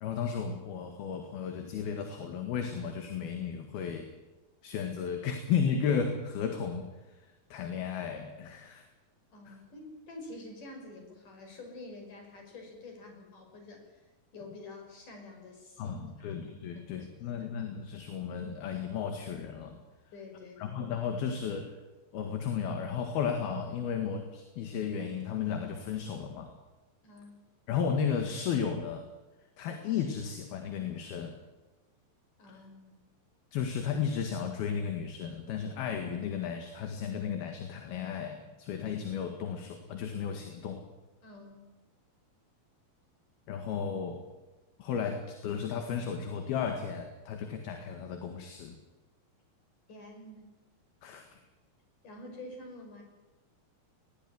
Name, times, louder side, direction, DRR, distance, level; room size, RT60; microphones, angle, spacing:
voice 1, 0.0-4.1 4.6-6.9 7.5-8.8 9.5-9.6 15.8-19.7 20.6-21.7 22.1-26.5 27.7-29.1 29.6-31.4 32.5-32.6 33.5-40.9 43.5-44.2 44.8-48.8 51.0-51.3, left 7 dB, 70° left, 5 dB, 3.7 m, -34 dB
voice 2, 9.3-14.0 14.3-17.5 20.1-20.6 27.0-27.4 32.4-33.0 41.2-41.6 49.9-50.5 52.0-53.0, left 2 dB, 50° left, 3 dB, 7.1 m, -48 dB
20.0 x 19.0 x 9.8 m, 1.1 s
omnidirectional pair, 4.8 m